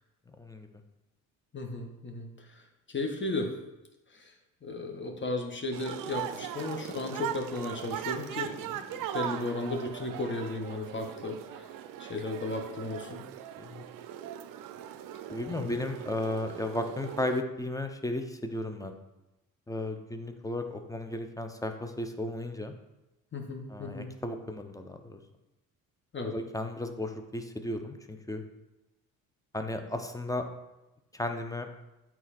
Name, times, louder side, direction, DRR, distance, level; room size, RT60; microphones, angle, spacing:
voice 1, 0.3-0.7 13.6-13.8 15.3-18.9 19.7-22.7 23.7-25.2 26.3-28.4 29.5-30.4 31.1-31.7, left 1 dB, 10° left, 6 dB, 0.9 m, -34 dB
voice 2, 1.5-2.6 2.9-3.5 4.1-4.3 4.6-11.7 12.0-13.2 15.6-15.7 23.3-24.1 26.1-26.3, left 2 dB, 30° left, 3 dB, 1.6 m, -35 dB
sound 1, 5.7-17.4, right 11 dB, 55° right, 0.6 m, -40 dB
8.1 x 4.3 x 4.4 m, 0.99 s
hypercardioid pair, 65°, 40 cm